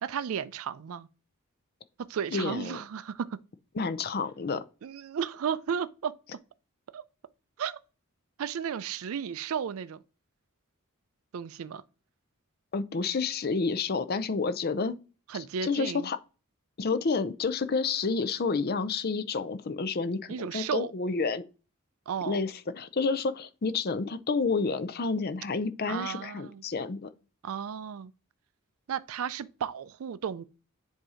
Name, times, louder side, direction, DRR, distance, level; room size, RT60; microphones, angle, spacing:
voice 1, 0.0-1.1 2.1-3.4 4.8-6.1 6.9-7.0 7.6-7.8 8.4-10.0 11.3-11.8 15.3-16.1 20.3-20.9 22.1-22.4 25.9-26.6 27.4-28.1 28.9-30.4, right 7 dB, 70° right, 0.4 m, -34 dB
voice 2, 2.3-2.8 3.7-4.6 12.7-15.0 15.3-16.2 16.8-21.4 22.3-27.1, left 4 dB, 45° left, 0.5 m, -30 dB
7.6 x 2.8 x 4.8 m
head